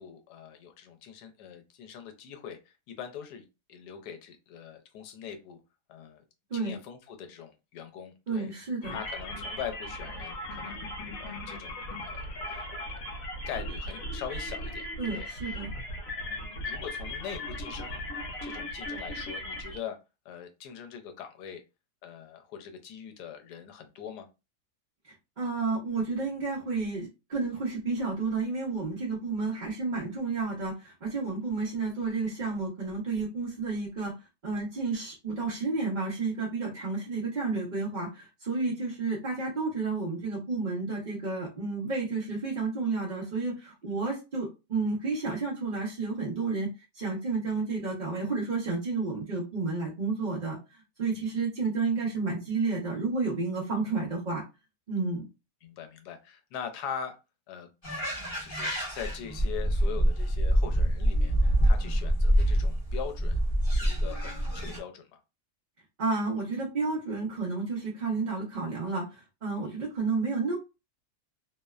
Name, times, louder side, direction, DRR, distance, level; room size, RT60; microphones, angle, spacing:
voice 1, 0.0-5.6 5.9-6.2 6.5-8.5 8.9-10.9 11.2-11.8 12.1-12.7 13.5-15.6 16.3-18.0 18.4-20.0 20.2-21.6 22.0-24.3 29.2-29.4 43.9-44.0 51.1-51.3 55.6-57.2 57.5-57.7 58.4-63.4 63.7-65.2 69.6-69.8, left 8 dB, 85° left, 6 dB, 1.1 m, -42 dB
voice 2, 8.3-9.0 15.0-15.7 25.4-34.1 34.4-46.7 46.9-54.4 54.9-55.2 66.0-70.6, right 4 dB, 65° right, -3 dB, 0.4 m, -31 dB
sound 1, 8.8-19.8, left 1 dB, 65° left, 1.0 m, -37 dB
sound 2, 57.8-64.8, equal, 25° left, 0.8 m, -26 dB
2.8 x 2.0 x 2.3 m, 0.27 s
omnidirectional pair, 1.7 m